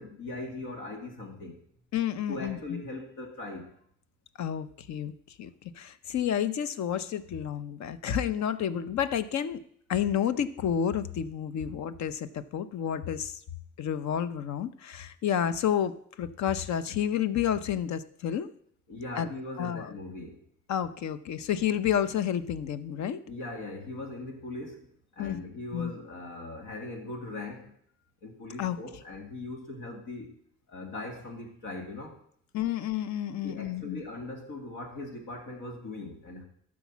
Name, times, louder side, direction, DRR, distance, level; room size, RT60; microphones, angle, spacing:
voice 1, 0.0-1.6 2.3-3.7 18.9-20.4 23.3-27.7 28.2-30.3 30.7-32.2 33.4-36.4, left 2 dB, 90° left, 2 dB, 2.1 m, -40 dB
voice 2, 1.9-2.8 4.4-9.6 9.9-13.4 13.8-18.5 19.2-19.3 19.6-19.9 20.7-23.2 25.2-25.4 25.7-25.9 28.6-28.8 32.5-34.0, left 9 dB, 65° left, 13 dB, 0.8 m, -30 dB
12.0 x 4.9 x 7.3 m, 0.66 s
cardioid pair, 90°, 30 cm